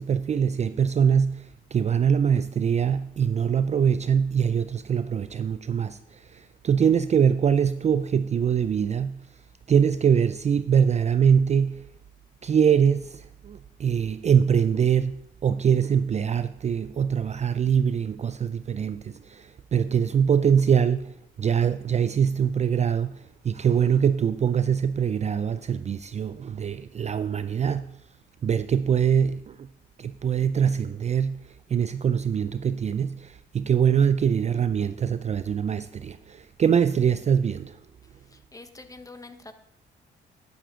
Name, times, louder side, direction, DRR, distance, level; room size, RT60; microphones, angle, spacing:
voice 1, 0.0-9.2 9.7-11.9 12.4-15.2 15.4-28.0 28.4-29.7 30.0-31.4 31.7-37.8, right 7 dB, 35° right, 0.4 m, -23 dB
voice 2, 38.3-39.5, left 3 dB, 15° left, 1.0 m, -45 dB
10.5 x 10.0 x 3.7 m
cardioid pair, 90°, 20 cm